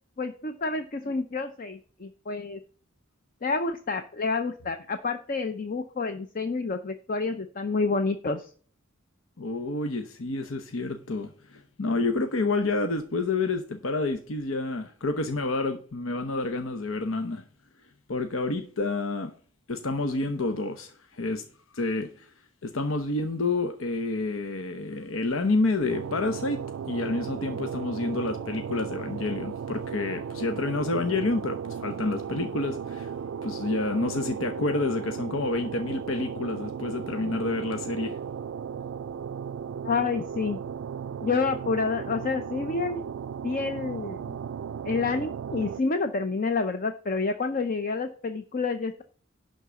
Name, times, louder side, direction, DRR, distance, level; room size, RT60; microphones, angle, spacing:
voice 1, 0.2-2.6 3.4-8.5 39.8-40.6 41.2-43.0 43.4-44.3 44.8-49.0, left 4 dB, 45° left, 0.7 m, -29 dB
voice 2, 9.4-17.4 18.1-19.3 19.7-21.4 21.7-22.3 22.6-26.6 26.9-33.1 33.4-38.2, left 3 dB, 90° left, 0.9 m, -29 dB
sound 1, 25.9-45.8, right 7 dB, 70° right, 0.3 m, -36 dB
11.0 x 4.0 x 6.9 m
head